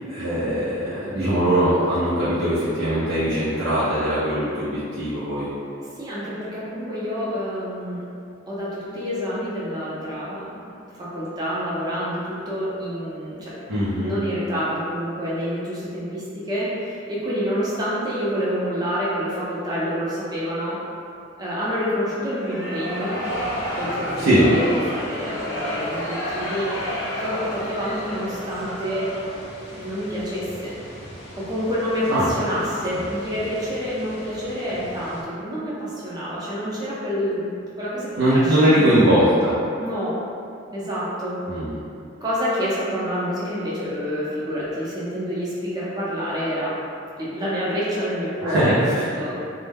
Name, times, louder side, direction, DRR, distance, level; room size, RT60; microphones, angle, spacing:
voice 1, 0.0-5.5 13.7-14.2 24.2-24.5 32.1-32.3 32.9-33.0 38.2-39.6 41.5-41.8 48.4-49.0, right 1 dB, 80° right, -10 dB, 0.5 m, -20 dB
voice 2, 6.0-8.0 8.5-10.6 11.0-13.5 13.8-20.8 21.4-23.2 23.8-26.7 27.2-29.1 29.7-30.8 31.4-37.5 37.8-39.1 39.8-40.2 40.7-41.4 42.2-46.8 47.2-49.4, equal, 20° right, -9 dB, 0.5 m, -28 dB
sound 1, 22.3-29.5, equal, 80° left, 0.6 m, -30 dB
sound 2, 23.2-35.2, equal, 30° left, 0.5 m, -42 dB
2.1 x 2.0 x 3.3 m, 2.5 s
head